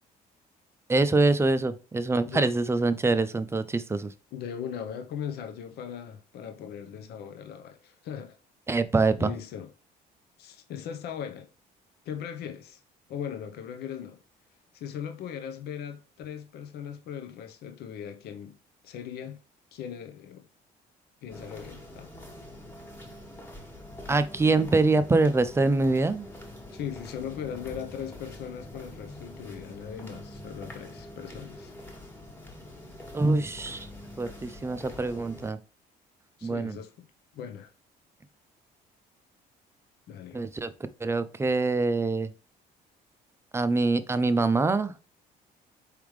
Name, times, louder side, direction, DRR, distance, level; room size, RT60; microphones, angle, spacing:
voice 1, 0.9-4.1 8.7-9.3 24.1-26.3 33.1-33.9 34.2-35.6 36.4-36.8 40.3-40.7 41.0-42.3 43.5-45.0, right 3 dB, 15° right, 0.5 m, -24 dB
voice 2, 4.3-8.4 9.2-9.7 10.4-11.5 12.0-12.8 13.1-14.2 14.7-18.5 18.8-19.4 19.7-20.4 21.2-22.1 26.7-31.7 36.4-36.9 37.3-37.7 40.1-40.4, left 8 dB, 70° left, 0.8 m, -39 dB
sound 1, 21.3-35.5, left 1 dB, 10° left, 1.5 m, -45 dB
4.8 x 3.5 x 3.1 m
cardioid pair, 110°, 17 cm